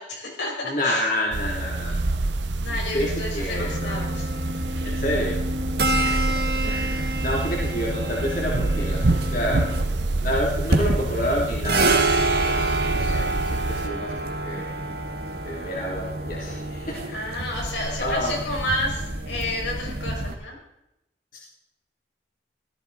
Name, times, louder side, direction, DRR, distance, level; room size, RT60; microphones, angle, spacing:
voice 1, 0.0-1.1 2.6-4.3 5.8-6.2 17.1-20.6, left 1 dB, 85° left, -1 dB, 5.8 m, -31 dB
voice 2, 0.6-2.2 2.9-4.0 4.8-5.4 6.0-6.4 6.6-9.8 10.2-14.7 15.4-17.5 18.0-18.4 21.3-21.4, equal, 45° left, -4 dB, 2.8 m, -29 dB
sound 1, 1.3-13.9, right 2 dB, 80° right, 0.9 m, -27 dB
sound 2, 3.5-20.3, right 2 dB, 55° right, 1.5 m, -28 dB
16.5 x 14.5 x 4.1 m, 0.86 s
head